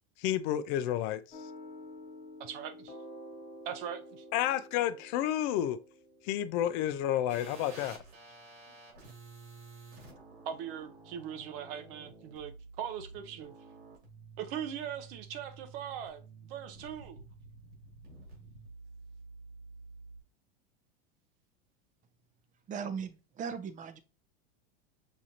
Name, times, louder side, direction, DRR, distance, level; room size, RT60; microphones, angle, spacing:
voice 1, 0.2-1.2 4.3-5.8 6.2-8.0, left 11 dB, 50° left, 0.4 m, -30 dB
sound 1, 1.3-6.8, left 1 dB, 25° left, 1.4 m, -49 dB
voice 2, 2.4-2.9 3.7-4.2 10.5-13.5 14.4-16.2 16.5-17.2, right 9 dB, 65° right, 0.8 m, -40 dB
sound 2, 7.3-20.2, right 3 dB, 90° right, 2.6 m, -51 dB
voice 3, 22.7-24.0, right 6 dB, 25° right, 0.6 m, -38 dB
6.2 x 2.5 x 2.8 m
supercardioid pair, 120°, 32 cm